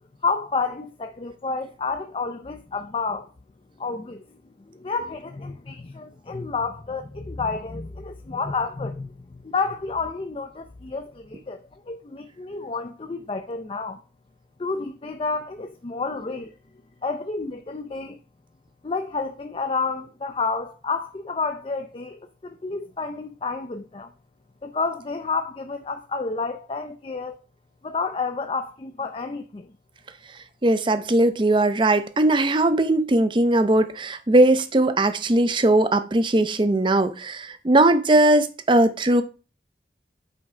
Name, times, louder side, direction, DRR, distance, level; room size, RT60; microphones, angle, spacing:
voice 1, 0.2-3.3 3.8-4.4 4.7-14.0 14.6-16.6 17.0-18.2 18.8-24.1 24.6-27.4 27.8-29.7, left 4 dB, 30° left, 0.4 m, -30 dB
voice 2, 30.6-39.2, right 1 dB, 25° right, 0.5 m, -19 dB
8.0 x 3.6 x 5.4 m
head